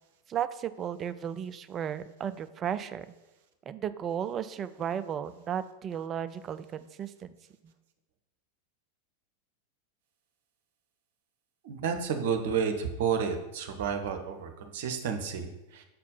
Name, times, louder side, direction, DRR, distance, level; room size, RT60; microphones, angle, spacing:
voice 1, 0.3-3.1 3.7-7.3, right 9 dB, 25° right, 12 dB, 0.3 m, -34 dB
voice 2, 11.6-15.8, right 6 dB, 55° right, 6 dB, 0.8 m, -31 dB
5.9 x 4.3 x 5.5 m, 1.0 s
figure-of-eight pair, 90°, 0 cm